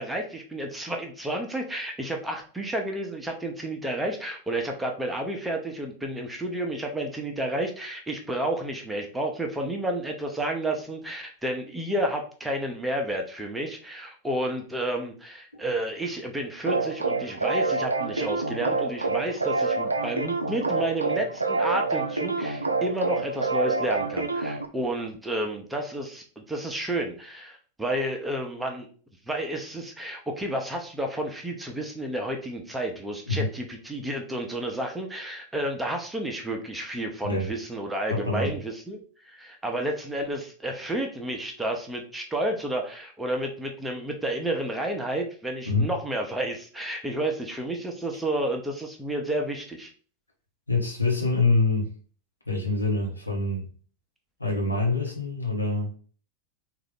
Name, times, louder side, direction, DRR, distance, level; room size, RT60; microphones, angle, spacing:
voice 1, 0.0-28.9 29.3-39.0 39.2-49.9, right 1 dB, 5° right, 0.7 m, -31 dB
sound 1, 16.7-24.7, right 3 dB, 80° right, 0.4 m, -27 dB
voice 2, 38.1-38.5 45.6-45.9 50.7-51.9 52.5-53.7 54.4-55.9, left 3 dB, 85° left, 1.0 m, -25 dB
3.7 x 2.5 x 3.4 m
figure-of-eight pair, 90°, 0 cm